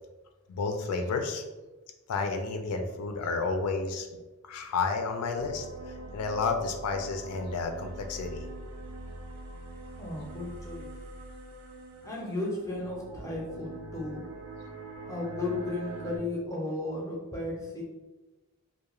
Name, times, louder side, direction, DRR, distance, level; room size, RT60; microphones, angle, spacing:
voice 1, 0.5-1.4 2.1-4.1 4.5-5.6 6.1-8.5, left 4 dB, 90° left, 5 dB, 0.4 m, -31 dB
sound 1, 5.3-16.2, right 2 dB, 70° right, 0.4 m, -43 dB
voice 2, 10.0-10.9 12.0-14.2 15.1-17.8, left 2 dB, 15° left, -3 dB, 0.4 m, -34 dB
2.3 x 2.1 x 3.0 m, 1.1 s
head